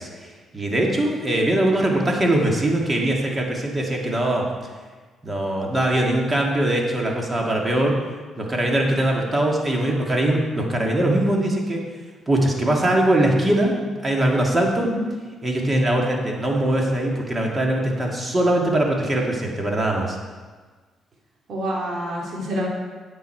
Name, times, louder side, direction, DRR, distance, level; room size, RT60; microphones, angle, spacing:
voice 1, 0.0-4.5 5.2-7.9 8.4-11.8 12.3-13.8 14.0-14.9 15.4-20.2, right 1 dB, 25° right, -1 dB, 2.1 m, -21 dB
voice 2, 21.5-22.7, equal, 55° right, -3 dB, 2.9 m, -27 dB
9.6 x 8.1 x 4.6 m, 1.4 s
cardioid pair, 90°, 0 cm